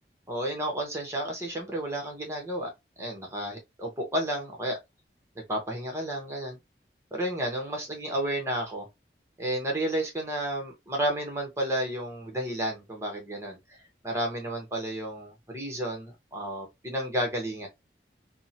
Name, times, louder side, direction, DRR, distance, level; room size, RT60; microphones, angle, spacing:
voice 1, 0.3-2.7 3.0-4.8 5.5-6.6 7.1-8.9 9.4-13.8 14.0-17.7, right 1 dB, 15° right, 0.8 m, -32 dB
2.7 x 2.1 x 2.7 m
head